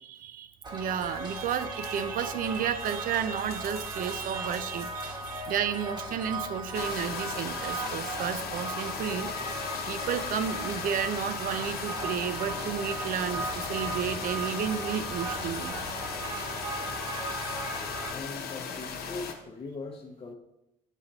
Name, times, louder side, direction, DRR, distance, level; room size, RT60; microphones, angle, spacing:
voice 1, 0.0-9.3 9.9-15.8, right 8 dB, 55° right, 12 dB, 0.5 m, -32 dB
sound 1, 0.6-18.1, right 2 dB, 25° right, 1.1 m, -37 dB
sound 2, 0.6-8.5, right 3 dB, 70° right, 1.6 m, -52 dB
sound 3, 6.7-19.3, left 6 dB, 65° left, 0.9 m, -37 dB
voice 2, 18.1-20.3, left 3 dB, 35° left, -1 dB, 0.7 m, -40 dB
7.2 x 4.0 x 3.9 m, 0.86 s
cardioid pair, 110°, 17 cm